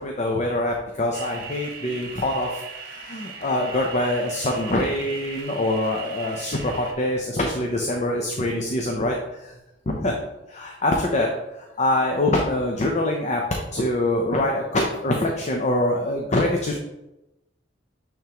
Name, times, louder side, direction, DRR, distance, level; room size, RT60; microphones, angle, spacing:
voice 1, 0.0-9.5 9.9-10.2 10.5-16.8, left 1 dB, 40° left, 1 dB, 0.6 m, -24 dB
sound 1, 1.1-6.9, right 6 dB, 55° right, 1.0 m, -39 dB
8.8 x 3.6 x 2.9 m, 0.95 s
head